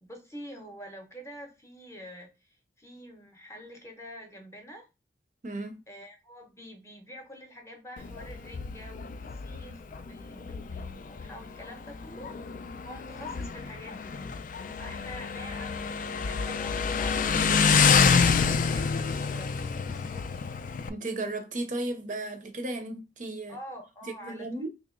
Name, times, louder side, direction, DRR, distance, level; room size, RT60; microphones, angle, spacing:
voice 1, 0.0-4.9 5.9-12.3 12.8-14.1 14.8-20.5 23.5-24.7, equal, 15° left, 0.7 m, -47 dB
voice 2, 5.4-5.8 20.9-23.6 24.0-24.7, right 2 dB, 45° right, 0.6 m, -35 dB
Motorcycle, 8.0-20.9, left 5 dB, 45° left, 0.3 m, -28 dB
3.0 x 2.8 x 3.7 m
head